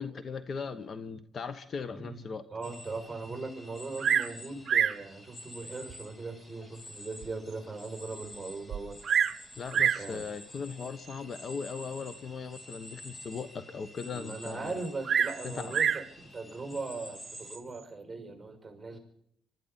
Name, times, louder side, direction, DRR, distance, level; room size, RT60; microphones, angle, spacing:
voice 1, 0.0-2.4 9.6-14.7 15.4-15.7, left 5 dB, 50° left, 12 dB, 1.1 m, -38 dB
voice 2, 1.9-9.0 9.9-10.3 14.1-19.0, right 3 dB, 15° right, 5 dB, 6.0 m, -39 dB
sound 1, 2.6-17.6, left 1 dB, 25° left, 3.7 m, -49 dB
Bird vocalization bird call bird song, 4.0-4.4 4.7-5.0 5.9-6.0 6.6-6.7 7.2-7.3 7.5-7.6 8.7-9.4 9.7-10.1 11.1-11.4 15.0-16.1 17.2-17.6, right 8 dB, 55° right, 0.8 m, -27 dB
25.5 x 12.5 x 4.1 m, 0.72 s
cardioid pair, 90°, 0 cm